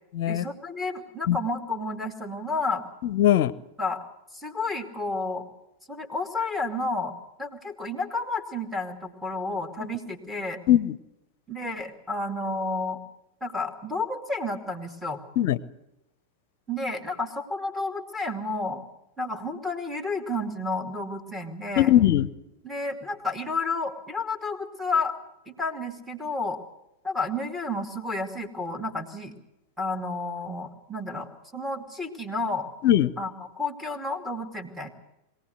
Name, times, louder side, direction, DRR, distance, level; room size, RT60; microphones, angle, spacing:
voice 1, 0.3-2.8 3.8-4.0 4.3-5.5 5.9-7.1 7.4-10.6 11.5-13.0 13.4-15.2 16.7-18.8 19.2-21.9 22.6-25.2 25.5-26.6 27.0-29.3 29.8-32.7 33.2-34.9, left 2 dB, 5° right, 3 dB, 2.6 m, -31 dB
voice 2, 3.0-3.5 10.7-10.9 15.4-15.6 21.8-22.3 32.8-33.1, left 12 dB, 50° left, 18 dB, 0.8 m, -20 dB
22.0 x 17.5 x 8.0 m, 0.88 s
figure-of-eight pair, 90°, 0 cm